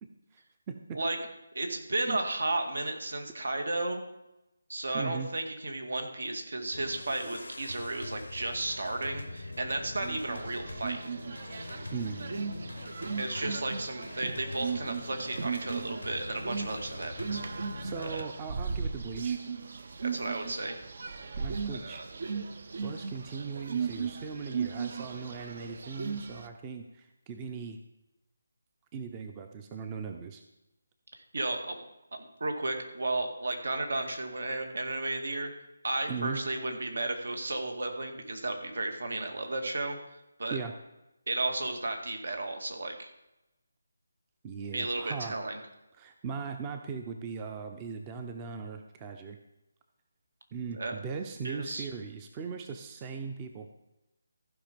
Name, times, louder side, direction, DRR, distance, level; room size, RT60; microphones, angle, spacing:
voice 1, 0.0-0.4 0.7-1.0 2.0-2.2 4.9-5.3 11.9-12.3 17.8-19.4 21.4-22.0 22.8-27.8 28.9-30.4 36.1-36.4 40.5-40.7 44.4-45.3 46.0-49.4 50.5-53.7, right 5 dB, 20° right, 5 dB, 0.6 m, -39 dB
voice 2, 1.5-4.0 4.7-11.0 13.2-17.6 18.0-18.3 20.0-20.8 21.7-22.1 31.2-31.8 32.1-40.0 40.4-40.6 41.3-43.1 44.7-45.6 50.7-50.9 51.4-51.9, right 2 dB, 75° right, 5 dB, 2.1 m, -33 dB
sound 1, 6.7-18.2, left 2 dB, 90° left, 0.8 m, -43 dB
sound 2, 10.0-26.5, right 5 dB, 55° right, 0.7 m, -37 dB
15.0 x 5.2 x 5.2 m, 0.94 s
figure-of-eight pair, 165°, 0 cm